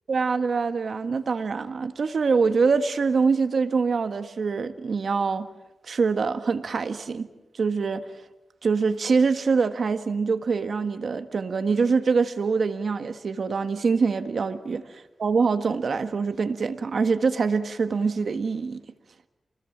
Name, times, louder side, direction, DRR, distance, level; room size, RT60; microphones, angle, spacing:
voice 1, 0.1-5.5 5.8-7.3 7.5-8.0 8.6-14.8 15.2-18.8, right 5 dB, 70° right, 9 dB, 1.5 m, -24 dB
29.0 x 20.5 x 7.4 m, 1.0 s
wide cardioid pair, 90°, 0 cm